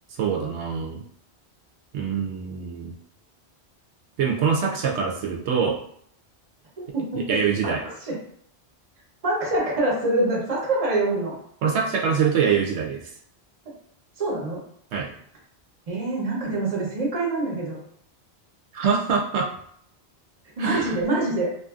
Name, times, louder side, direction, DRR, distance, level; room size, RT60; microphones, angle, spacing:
voice 1, 0.2-1.0 1.9-2.9 4.2-5.8 7.3-7.8 11.6-13.1 14.9-15.1 18.7-19.5 20.6-21.0, right 6 dB, 85° right, -1 dB, 0.9 m, -24 dB
voice 2, 6.9-7.7 8.0-8.2 9.2-11.3 14.2-14.6 15.9-17.8 20.6-21.5, right 2 dB, 35° right, -3 dB, 0.8 m, -25 dB
2.6 x 2.5 x 2.3 m, 0.68 s
omnidirectional pair, 1.1 m